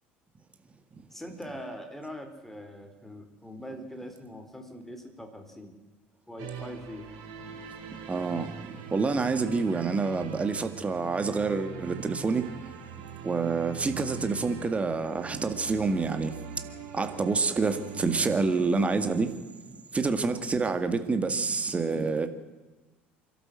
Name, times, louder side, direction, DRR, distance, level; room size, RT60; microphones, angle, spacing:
voice 1, 1.1-5.7 6.3-7.1, equal, 5° left, 6 dB, 4.0 m, -42 dB
sound 1, 6.4-19.2, right 6 dB, 60° right, 4.7 m, -42 dB
voice 2, 8.1-8.5 8.9-12.5 13.2-16.3 16.9-19.3 19.9-22.3, right 4 dB, 20° right, 8 dB, 2.0 m, -27 dB
28.0 x 12.5 x 7.8 m, 1.2 s
figure-of-eight pair, 65°, 6 cm